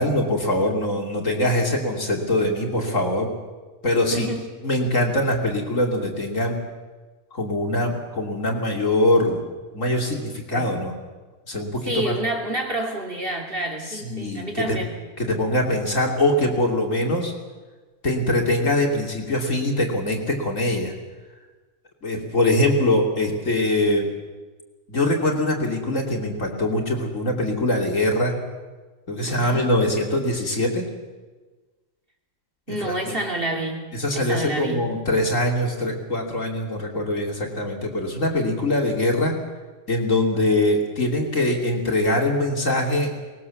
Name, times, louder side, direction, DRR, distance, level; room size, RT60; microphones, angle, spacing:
voice 1, 0.0-3.3 3.8-4.3 4.6-6.6 7.3-9.4 9.7-10.9 11.5-12.1 13.9-14.8 15.2-17.3 18.0-20.9 22.0-24.1 24.9-28.4 29.1-30.9 32.7-33.1 33.9-39.4 39.9-43.1, left 1 dB, 50° left, 1 dB, 3.4 m, -23 dB
voice 2, 4.1-4.5 10.5-10.7 11.8-14.9 29.2-29.7 32.7-34.9, right 1 dB, 35° right, 2 dB, 2.8 m, -29 dB
23.5 x 20.5 x 7.3 m, 1.3 s
omnidirectional pair, 1.8 m